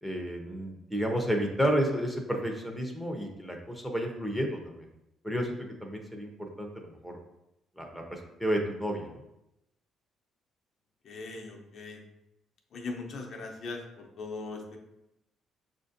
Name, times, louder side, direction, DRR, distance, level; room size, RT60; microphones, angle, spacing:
voice 1, 0.0-4.9 5.2-7.2 7.8-9.2, equal, ahead, 1 dB, 0.7 m, -31 dB
voice 2, 11.0-12.0 12.7-14.8, left 3 dB, 55° left, 1 dB, 0.7 m, -40 dB
6.2 x 2.6 x 2.5 m, 0.88 s
cardioid pair, 105°, 0 cm